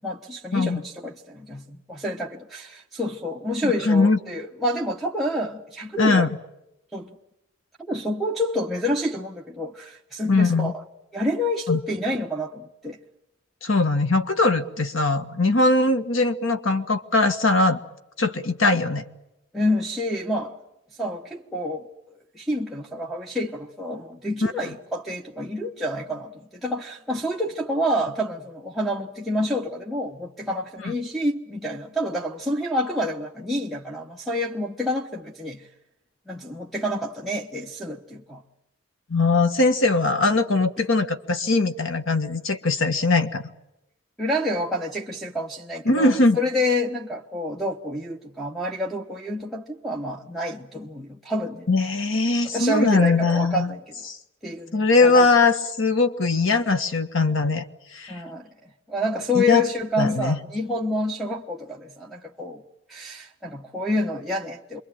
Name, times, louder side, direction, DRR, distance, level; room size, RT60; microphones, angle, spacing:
voice 1, 0.0-6.3 6.9-7.1 7.8-10.7 11.1-13.0 19.5-20.5 21.0-21.9 22.3-35.7 36.3-38.4 44.2-51.7 52.5-53.9 54.4-55.3 58.1-58.5 58.9-62.6 62.9-64.8, left 1 dB, ahead, 1.2 m, -28 dB
voice 2, 3.6-4.2 6.0-6.3 10.3-10.7 11.7-11.8 13.6-17.8 18.2-19.0 24.4-24.5 30.8-30.9 39.1-43.4 45.8-46.4 51.7-53.7 54.1-54.2 54.7-57.6 57.9-58.2 59.3-59.6 60.0-60.4, left 3 dB, 70° left, 1.5 m, -21 dB
27.5 x 23.0 x 8.8 m
head